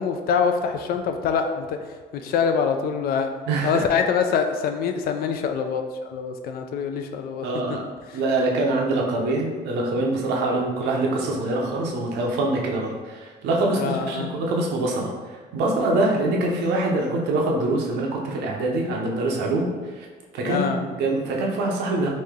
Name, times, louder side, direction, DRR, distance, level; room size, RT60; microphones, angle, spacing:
voice 1, 0.0-1.8 2.1-3.3 3.6-7.5 13.7-14.3 20.4-20.8, left 6 dB, 65° left, 6 dB, 0.4 m, -24 dB
voice 2, 3.5-3.8 7.4-7.8 8.1-15.1 15.5-19.7 20.0-20.1 20.3-22.1, right 2 dB, 80° right, -1 dB, 0.7 m, -24 dB
3.2 x 2.7 x 3.6 m, 1.4 s
cardioid pair, 110°, 17 cm